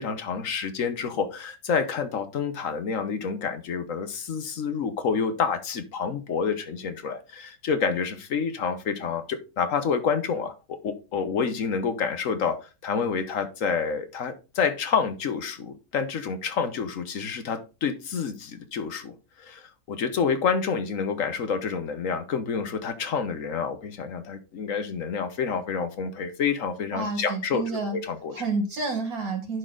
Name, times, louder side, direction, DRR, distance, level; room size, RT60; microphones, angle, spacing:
voice 1, 0.0-28.4, left 6 dB, 60° left, 1.3 m, -28 dB
voice 2, 26.9-28.0 28.3-29.6, right 3 dB, 65° right, 2.7 m, -29 dB
11.0 x 4.4 x 3.8 m
omnidirectional pair, 1.7 m